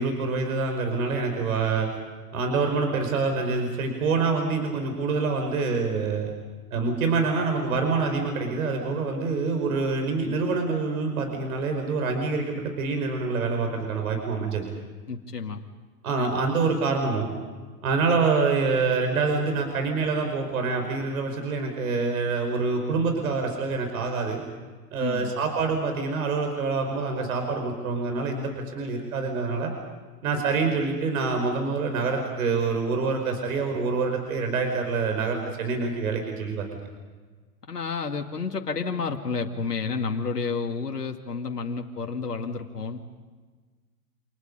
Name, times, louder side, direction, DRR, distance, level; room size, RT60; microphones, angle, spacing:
voice 1, 0.0-1.9 2.3-6.3 6.7-14.7 16.0-17.3 17.8-24.4 24.9-29.7 30.2-36.8, right 4 dB, 65° right, 4 dB, 5.2 m, -26 dB
voice 2, 15.1-15.6 16.2-16.3 25.0-25.3 37.7-43.1, left 4 dB, 90° left, 3 dB, 2.2 m, -30 dB
29.5 x 27.5 x 5.4 m, 1.4 s
hypercardioid pair, 110°, 46 cm